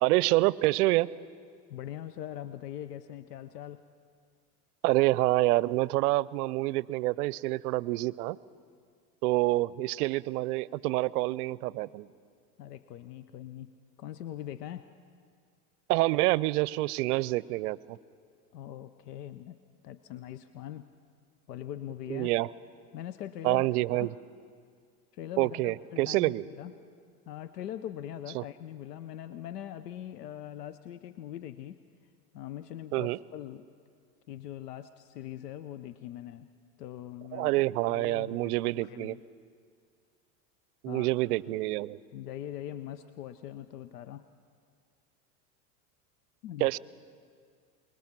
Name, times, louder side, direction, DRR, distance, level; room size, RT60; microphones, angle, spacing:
voice 1, 0.0-1.1 4.8-8.4 9.2-12.1 15.9-18.0 22.1-22.5 23.4-24.1 25.4-26.4 28.3-28.4 32.9-33.2 37.3-39.2 40.8-42.0 46.6-46.8, right 19 dB, 75° right, 21 dB, 0.6 m, -27 dB
voice 2, 1.7-3.8 12.6-14.9 18.5-20.9 21.5-22.3 22.9-23.6 23.9-24.1 25.1-26.7 27.3-31.8 32.3-33.7 34.3-36.5 36.8-39.2 40.8-41.1 42.1-44.3 46.4-46.7, left 11 dB, 85° left, 12 dB, 0.8 m, -42 dB
24.5 x 21.0 x 6.0 m, 2.1 s
hypercardioid pair, 105°, 46 cm